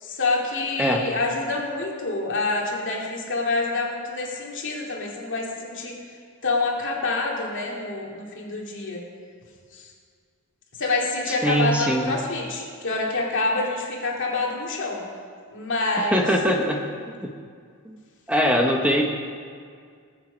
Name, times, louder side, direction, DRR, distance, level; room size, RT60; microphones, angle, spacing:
voice 1, 0.0-5.9 6.4-9.0 9.7-9.8 10.8-15.0 15.5-16.2, left 3 dB, 55° left, -2 dB, 2.4 m, -27 dB
voice 2, 11.3-12.1 16.0-16.8 17.1-17.3 17.8-18.0 18.3-19.0, equal, 5° right, 1 dB, 0.8 m, -22 dB
19.5 x 7.6 x 5.1 m, 2.1 s
head